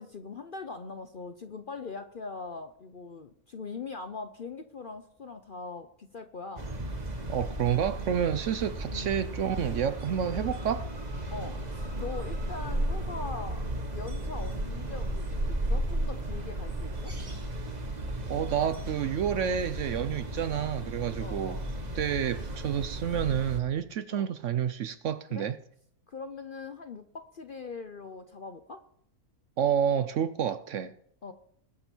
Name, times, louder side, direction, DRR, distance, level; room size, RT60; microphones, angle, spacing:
voice 1, 0.0-6.7 8.9-9.1 11.3-13.6 13.9-17.1 21.2-21.7 24.1-24.3 25.3-25.5 26.1-28.8 31.2-31.3, left 4 dB, 50° left, 0.7 m, -41 dB
sound 1, 6.6-23.6, right 1 dB, 30° right, 1.3 m, -34 dB
voice 2, 7.3-10.8 18.3-21.6 22.0-25.6 29.6-30.9, right 8 dB, 65° right, 0.8 m, -29 dB
20.0 x 6.9 x 4.5 m
omnidirectional pair, 1.6 m